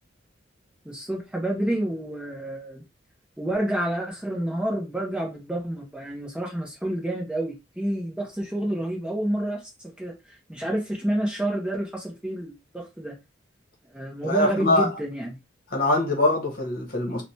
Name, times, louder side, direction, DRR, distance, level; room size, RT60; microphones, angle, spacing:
voice 1, 0.9-2.8 3.4-13.2 13.9-15.4, right 1 dB, 5° right, 0.6 m, -29 dB
voice 2, 14.2-14.9 15.7-17.2, left 2 dB, 50° left, 0.9 m, -23 dB
3.2 x 2.1 x 2.7 m
head